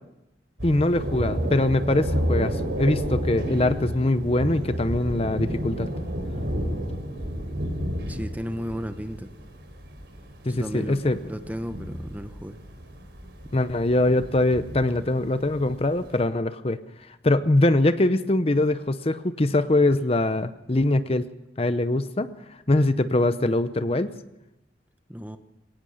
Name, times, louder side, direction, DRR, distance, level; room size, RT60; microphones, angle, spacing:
voice 1, 0.6-5.9 10.4-11.2 13.5-16.8 17.2-21.3 21.6-22.3 22.7-24.1, left 2 dB, 35° left, 12 dB, 0.8 m, -23 dB
Thunder, 0.6-16.1, equal, 80° right, 4.0 m, -31 dB
voice 2, 8.1-9.3 10.5-12.6 25.1-25.4, equal, 10° right, 9 dB, 0.9 m, -34 dB
22.5 x 18.0 x 6.5 m, 0.87 s
head